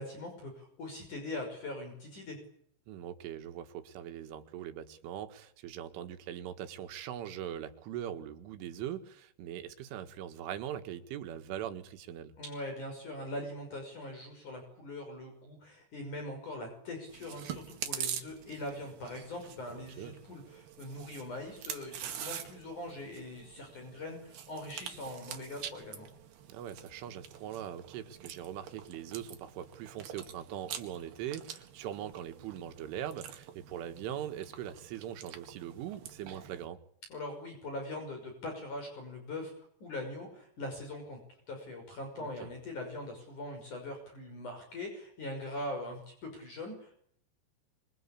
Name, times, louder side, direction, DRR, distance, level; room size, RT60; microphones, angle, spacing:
voice 1, 0.0-2.4 12.4-26.1 37.1-39.5 39.8-41.2 41.5-46.9, left 1 dB, 40° left, 7.1 m, -42 dB
voice 2, 2.9-12.4 19.7-20.2 26.5-36.8 42.2-42.5, right 10 dB, 90° right, 4.2 m, -41 dB
Chewing mastication, 17.1-36.7, right 9 dB, 65° right, 3.8 m, -45 dB
26.0 x 25.0 x 8.7 m
omnidirectional pair, 5.4 m